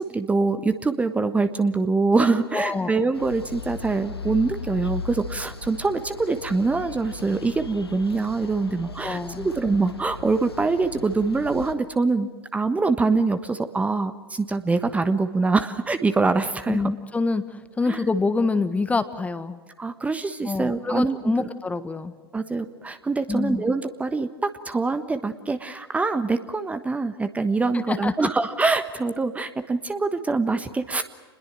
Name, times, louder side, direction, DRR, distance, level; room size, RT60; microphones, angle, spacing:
voice 1, 0.0-16.8 17.9-18.0 19.8-21.5 22.3-31.0, right 3 dB, 10° right, 10 dB, 1.3 m, -24 dB
voice 2, 2.5-2.9 9.0-9.5 16.7-19.6 20.4-22.1 23.3-23.6 27.7-28.3, left 3 dB, 10° left, 12 dB, 1.4 m, -26 dB
sound 1, 3.1-11.7, left 4 dB, 80° left, 1.8 m, -38 dB
28.0 x 21.0 x 7.5 m, 1.3 s
figure-of-eight pair, 95°, 13 cm